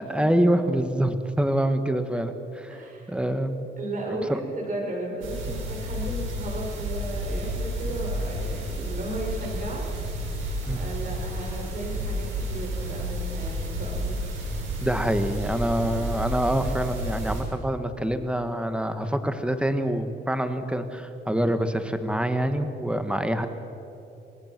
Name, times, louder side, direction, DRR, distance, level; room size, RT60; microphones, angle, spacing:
voice 1, 0.0-2.8 3.1-3.7 4.3-4.4 10.7-10.8 14.8-23.5, right 1 dB, 5° right, 8 dB, 1.8 m, -26 dB
voice 2, 2.7-3.2 3.8-9.8 10.2-10.4 10.7-14.2, right 1 dB, 40° right, 0 dB, 6.7 m, -35 dB
sound 1, 5.2-17.4, right 1 dB, 85° right, 6.4 m, -31 dB
28.0 x 19.0 x 6.2 m, 3.0 s
cardioid pair, 90°, 20 cm